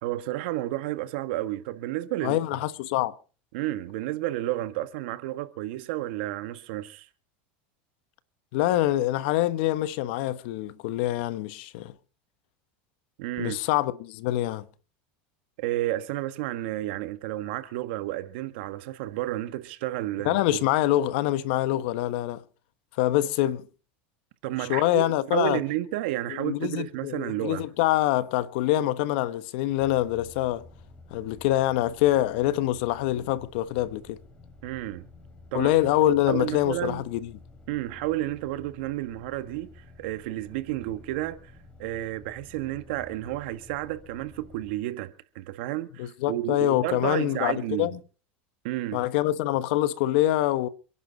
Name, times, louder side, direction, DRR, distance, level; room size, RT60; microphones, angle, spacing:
voice 1, 0.0-2.4 3.5-7.1 13.2-13.6 15.6-20.6 24.4-27.6 34.6-35.1 35.5-35.8 36.3-37.0 37.7-39.7 40.0-41.5 41.8-47.9 48.6-49.0, right 15 dB, 70° right, 1.6 m, -31 dB
voice 2, 2.2-3.1 8.5-11.9 13.4-14.6 20.2-22.4 23.0-23.7 24.6-25.6 26.3-30.6 31.1-34.2 35.5-37.3 46.0-48.0 48.9-50.7, left 14 dB, 65° left, 1.2 m, -25 dB
sound 1, 29.8-44.7, left 2 dB, 15° left, 3.6 m, -51 dB
28.0 x 11.0 x 4.1 m
supercardioid pair, 150°, 6 cm